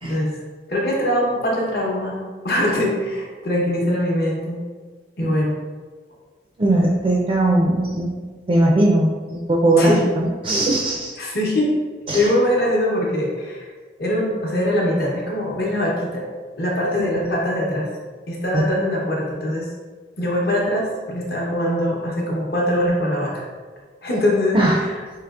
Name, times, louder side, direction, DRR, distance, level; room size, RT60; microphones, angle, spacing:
voice 1, 0.0-0.4 0.7-4.6 5.2-5.5 9.8-10.0 11.2-11.7 12.1-13.7 14.0-16.2 16.6-17.9 18.3-19.7 20.2-23.4 24.0-25.0, left 1 dB, 55° left, -3 dB, 0.8 m, -22 dB
voice 2, 6.6-8.2 8.5-11.1 12.1-12.3 18.5-18.6 24.5-24.8, right 1 dB, 30° right, -1 dB, 0.4 m, -19 dB
4.8 x 2.8 x 2.4 m, 1.4 s
head